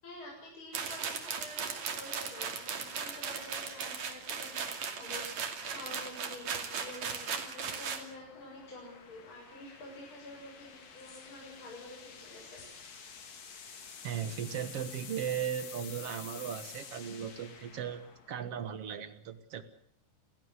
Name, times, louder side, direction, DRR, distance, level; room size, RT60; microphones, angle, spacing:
voice 1, 0.0-5.2 5.6-12.6, left 1 dB, 30° left, -2 dB, 8.0 m, -48 dB
sound 1, 0.7-8.0, right 6 dB, 45° right, 3.4 m, -37 dB
sound 2, 2.6-18.9, left 6 dB, 45° left, 3.2 m, -51 dB
sound 3, 10.8-11.8 12.5-13.3, left 4 dB, 75° left, 7.4 m, -58 dB
voice 2, 14.0-19.6, right 9 dB, 65° right, 11 dB, 1.5 m, -37 dB
30.0 x 16.0 x 8.1 m, 0.65 s
omnidirectional pair, 4.8 m